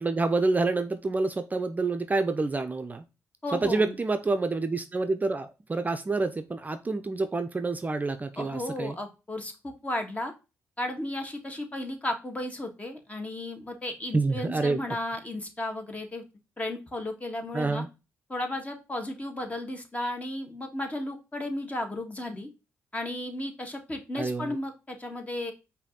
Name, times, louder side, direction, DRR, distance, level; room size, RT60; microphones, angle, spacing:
voice 1, 0.0-3.0 3.5-9.0 14.1-14.8 17.5-17.9 24.2-24.6, right 3 dB, 30° right, 9 dB, 0.5 m, -28 dB
voice 2, 3.4-3.9 8.4-10.3 10.8-16.2 16.6-17.8 18.3-22.5 22.9-25.5, left 1 dB, 25° left, 4 dB, 1.5 m, -34 dB
5.1 x 2.7 x 3.8 m, 0.28 s
supercardioid pair, 60°, 6 cm